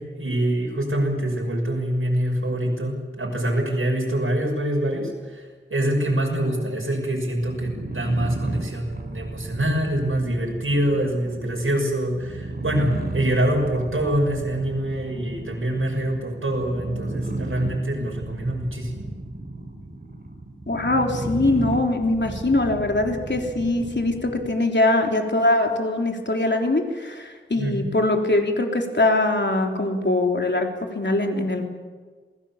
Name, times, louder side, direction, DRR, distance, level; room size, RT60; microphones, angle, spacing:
voice 1, 0.0-5.4 5.7-19.1 27.6-27.8, right 1 dB, 90° right, -1 dB, 6.1 m, -25 dB
sound 1, 7.4-24.6, right 2 dB, 50° right, 4.6 m, -33 dB
voice 2, 20.7-31.6, left 2 dB, 60° left, 2 dB, 3.6 m, -22 dB
27.5 x 19.5 x 7.4 m, 1.5 s
wide cardioid pair, 60°, 21 cm